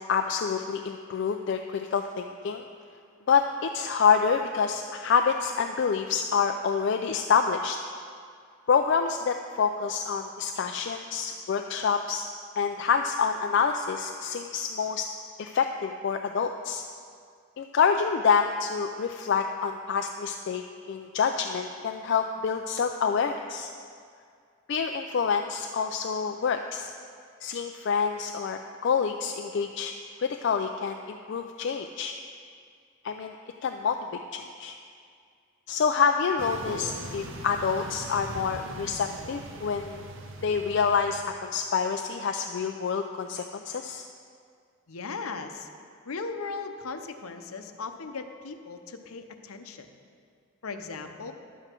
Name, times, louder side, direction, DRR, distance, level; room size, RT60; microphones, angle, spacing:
voice 1, 0.0-2.6 3.3-7.8 8.7-12.3 12.6-15.1 15.4-16.8 17.6-20.6 20.9-23.7 24.7-26.9 27.4-29.9 30.2-32.1 33.0-33.3 33.6-34.0 34.3-34.7 35.7-40.0 40.4-44.0, left 6 dB, 55° left, 5 dB, 0.3 m, -27 dB
sound 1, 36.4-41.4, right 1 dB, 60° right, 0.7 m, -41 dB
voice 2, 44.9-45.7 46.1-49.9 50.6-51.3, left 4 dB, 90° left, 7 dB, 0.7 m, -37 dB
11.0 x 7.9 x 4.4 m, 2.2 s
head